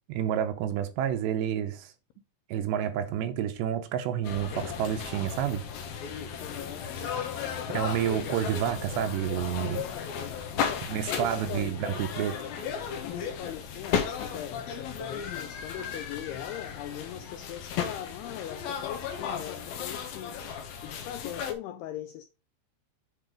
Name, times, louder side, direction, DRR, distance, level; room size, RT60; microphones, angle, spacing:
voice 1, 0.1-1.9 2.5-5.6 7.7-9.9 10.9-12.4, right 10 dB, 80° right, 2.9 m, -29 dB
sound 1, 4.2-21.5, left 7 dB, 70° left, 2.5 m, -35 dB
voice 2, 6.4-7.2 10.6-11.8 13.1-20.4 20.8-22.2, left 11 dB, 90° left, 2.3 m, -40 dB
7.9 x 4.9 x 5.0 m
omnidirectional pair, 5.3 m